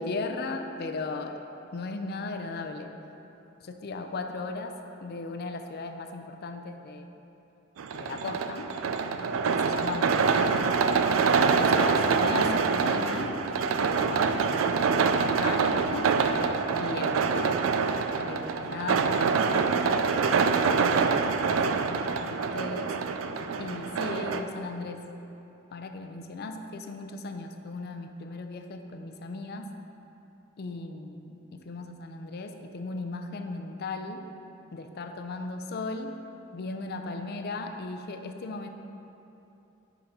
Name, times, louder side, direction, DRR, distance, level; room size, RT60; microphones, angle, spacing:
voice 1, 0.0-1.4 1.7-2.9 3.6-7.1 7.9-8.7 9.5-10.7 11.6-13.4 13.8-17.6 18.1-19.6 20.1-23.0 23.6-25.1 25.7-29.7 30.6-34.3 34.7-36.2 36.5-38.7, left 3 dB, 50° left, 6 dB, 0.4 m, -37 dB
sound 1, 7.8-24.4, right 5 dB, 70° right, 0.3 m, -25 dB
5.7 x 5.1 x 5.4 m, 2.9 s
head